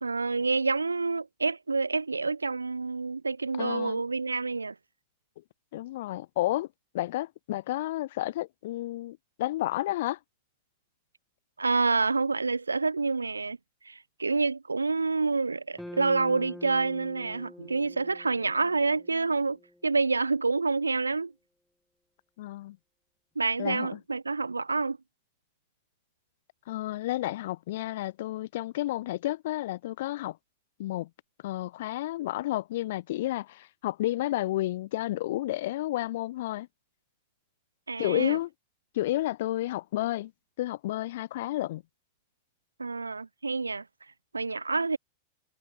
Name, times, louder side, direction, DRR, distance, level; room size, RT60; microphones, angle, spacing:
voice 1, 0.0-4.7 11.6-13.6 13.8-21.3 23.4-25.0 37.9-38.4 42.8-43.8 44.3-45.0, right 4 dB, 80° right, 0.8 m, -28 dB
voice 2, 3.6-4.0 5.7-6.7 6.9-10.2 22.4-22.8 23.6-24.0 26.7-30.4 30.8-31.1 31.4-36.7 38.0-38.5 38.9-40.3 40.6-41.8, left 16 dB, 55° left, 0.5 m, -31 dB
sound 1, 15.8-20.1, left 1 dB, 5° left, 2.2 m, -46 dB
figure-of-eight pair, 90°, 0 cm